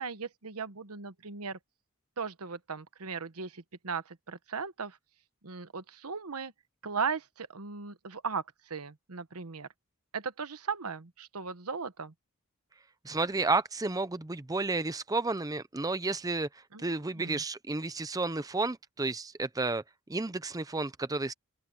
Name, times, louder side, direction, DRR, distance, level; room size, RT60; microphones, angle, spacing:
voice 1, 0.0-1.6 2.2-5.0 5.4-6.5 6.8-9.7 10.1-12.1 16.7-17.4, right 5 dB, 80° right, 1.1 m, -37 dB
voice 2, 13.0-16.5 16.8-19.8 20.1-21.3, right 3 dB, 15° right, 0.6 m, -31 dB
open air
head